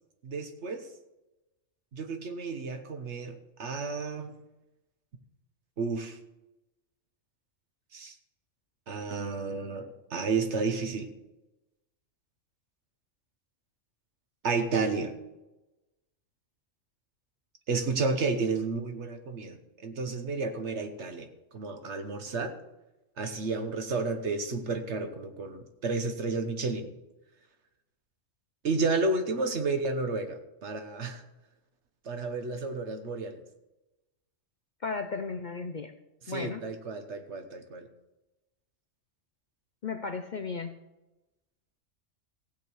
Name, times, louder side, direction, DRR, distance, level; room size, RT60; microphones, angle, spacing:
voice 1, 0.2-0.9 1.9-4.3 5.8-6.2 7.9-8.1 8.9-11.1 14.4-15.1 17.7-21.3 21.5-22.5 23.2-26.9 28.6-31.2 32.0-33.4 36.3-37.9, right 4 dB, 60° right, 7 dB, 1.4 m, -31 dB
voice 2, 34.8-35.9 36.3-36.6 39.8-40.8, left 4 dB, 50° left, 7 dB, 0.6 m, -35 dB
16.0 x 8.3 x 4.6 m, 1.0 s
omnidirectional pair, 1.3 m